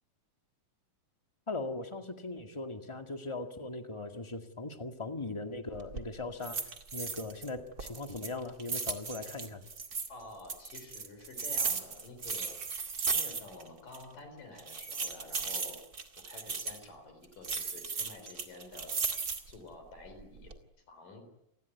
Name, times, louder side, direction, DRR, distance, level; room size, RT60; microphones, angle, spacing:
voice 1, 1.5-6.6 6.9-9.6, left 2 dB, 20° left, 6 dB, 0.8 m, -39 dB
sound 1, 5.7-6.1 6.4-7.5 7.8-10.1 10.5-13.7 13.9-14.0 14.6-16.8 17.4-19.6 20.1-20.6, right 5 dB, 30° right, 2.0 m, -36 dB
voice 2, 10.1-12.6 13.1-15.8 16.3-19.0 19.5-20.5 20.9-21.2, left 3 dB, 70° left, 7 dB, 5.7 m, -49 dB
29.0 x 20.5 x 9.5 m, 0.85 s
omnidirectional pair, 4.0 m